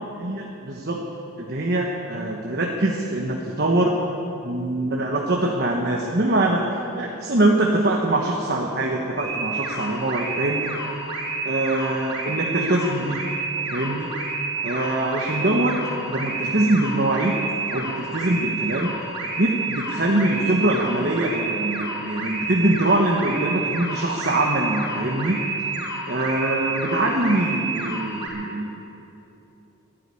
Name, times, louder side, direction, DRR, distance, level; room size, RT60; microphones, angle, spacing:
voice 1, 0.1-1.0 1.4-4.0 4.4-10.7 11.4-13.3 13.7-14.1 14.6-17.4 17.7-19.0 19.4-25.4 26.1-28.8, right 1 dB, 50° right, -1 dB, 1.2 m, -23 dB
sound 1, 9.2-28.3, right 3 dB, 25° right, 4.7 m, -30 dB
12.0 x 11.5 x 9.7 m, 2.9 s
head